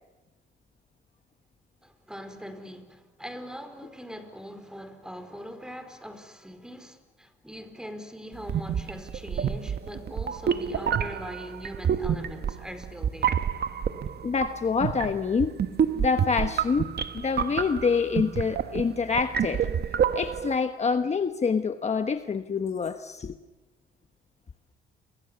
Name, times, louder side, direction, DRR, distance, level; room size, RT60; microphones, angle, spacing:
voice 1, 1.8-13.4, equal, 5° right, 4.7 m, -42 dB
sound 1, 8.4-20.5, right 8 dB, 55° right, 1.4 m, -28 dB
voice 2, 14.2-15.5 15.9-16.9 17.1-19.7 20.1-23.4, left 5 dB, 35° left, 1.2 m, -26 dB
30.0 x 24.5 x 7.1 m
cardioid pair, 90°, 20 cm